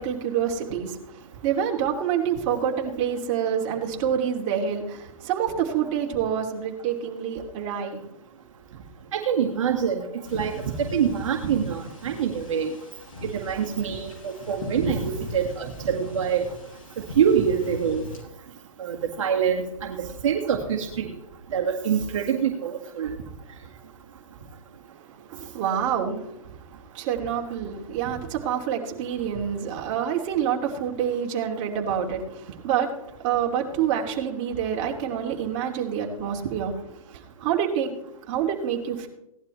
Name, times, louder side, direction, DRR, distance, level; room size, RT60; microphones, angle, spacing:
voice 1, 0.0-8.0 25.3-26.3 26.9-36.7 37.4-37.9 38.3-39.1, right 8 dB, 35° right, 0 dB, 2.7 m, -27 dB
voice 2, 9.1-10.6 10.9-12.7 13.2-16.5 17.2-18.0 18.8-21.1 21.5-23.1, right 8 dB, 60° right, 1 dB, 1.9 m, -25 dB
sound 1, 10.2-18.2, left 2 dB, 75° left, 5.8 m, -39 dB
17.5 x 11.5 x 3.3 m, 0.82 s
hypercardioid pair, 140°, 18 cm